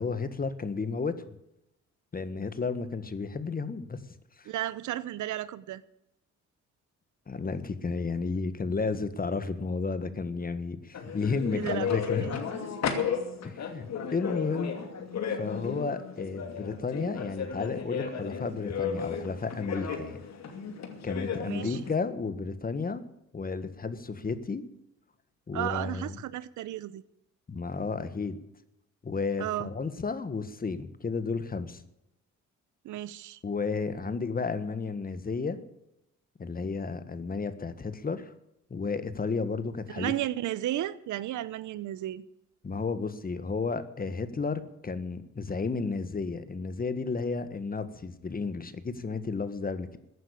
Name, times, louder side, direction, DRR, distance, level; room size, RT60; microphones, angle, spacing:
voice 1, 0.0-1.4 2.1-4.0 4.4-4.5 7.3-12.4 13.4-14.7 15.3-20.2 21.0-23.0 23.3-24.6 25.5-26.2 27.5-28.4 29.0-31.8 33.4-35.6 36.4-38.3 38.7-40.1 42.6-50.0, left 4 dB, 30° left, 1.6 m, -32 dB
voice 2, 4.5-5.8 11.5-11.9 21.4-21.8 25.5-27.0 29.4-29.7 32.8-33.4 40.0-42.2, right 13 dB, 75° right, 0.9 m, -33 dB
sound 1, 10.9-21.9, left 6 dB, 60° left, 2.7 m, -34 dB
15.0 x 9.4 x 8.4 m
cardioid pair, 90°, 30 cm